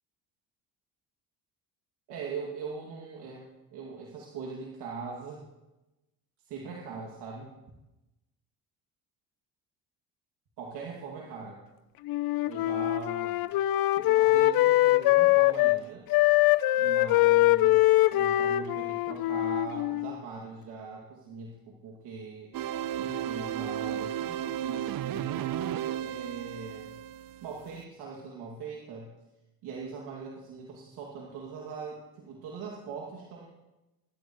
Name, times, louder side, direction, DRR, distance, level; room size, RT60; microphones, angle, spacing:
voice 1, 2.1-3.5 3.7-5.5 6.5-7.5 10.6-11.6 12.4-13.4 14.0-16.1 16.7-22.6 23.0-26.9 27.4-29.1 29.6-33.5, right 5 dB, 80° right, -2 dB, 2.3 m, -41 dB
Wind instrument woodwind instrument, 12.1-15.8 16.1-20.2, left 16 dB, 65° left, 0.6 m, -23 dB
sound 1, 22.5-27.8, right 10 dB, 60° right, 0.7 m, -34 dB
22.5 x 12.0 x 3.0 m, 1.0 s
cardioid pair, 90°, 39 cm